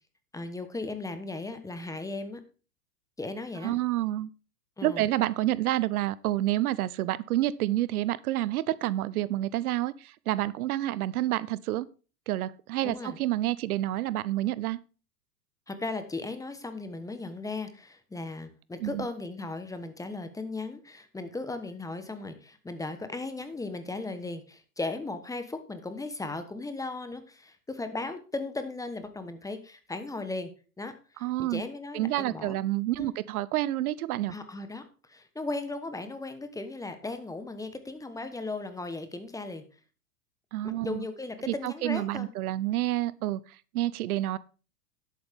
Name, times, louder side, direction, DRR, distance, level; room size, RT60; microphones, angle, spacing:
voice 1, 0.3-2.4 3.2-3.7 4.8-5.0 12.8-13.2 15.7-30.5 30.8-32.6 33.0-33.1 34.3-39.6 40.6-42.3, left 3 dB, 5° left, 1.1 m, -37 dB
voice 2, 3.6-4.3 4.8-11.9 12.3-14.8 18.8-19.1 31.2-31.6 31.9-34.3 40.5-41.1 41.5-44.4, right 15 dB, 70° right, 0.7 m, -29 dB
11.0 x 8.5 x 3.5 m
hypercardioid pair, 115°, 46 cm